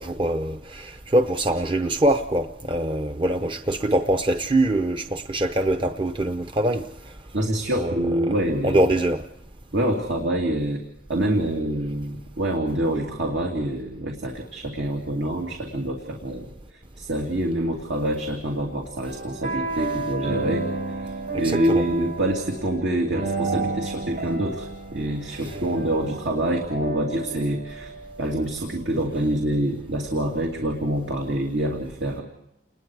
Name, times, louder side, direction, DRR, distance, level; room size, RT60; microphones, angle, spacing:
voice 1, 0.0-6.8 7.8-8.3 8.6-9.2 21.4-21.8 25.4-25.6, right 1 dB, 30° right, 0.7 m, -23 dB
voice 2, 7.3-8.8 9.7-10.8 11.1-32.2, right 1 dB, 80° right, 2.7 m, -26 dB
sound 1, 19.1-28.5, right 3 dB, 60° right, 7.0 m, -32 dB
29.0 x 21.0 x 4.7 m
head